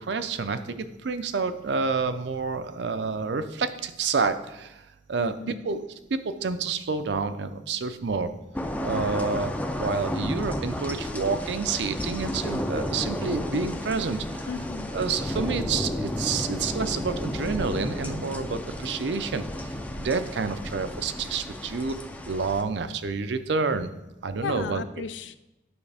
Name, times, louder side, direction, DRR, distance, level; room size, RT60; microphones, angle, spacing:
voice 1, 0.0-4.8 5.1-5.8 6.1-8.3 8.8-14.5 14.9-22.0 22.3-23.9 24.2-24.8, right 4 dB, 70° right, 10 dB, 0.5 m, -29 dB
voice 2, 5.2-5.6 14.5-14.9 24.4-25.4, left 5 dB, 75° left, 12 dB, 0.4 m, -35 dB
sound 1, 8.5-22.6, left 1 dB, 10° left, 0.4 m, -32 dB
9.5 x 5.6 x 3.4 m, 0.98 s
head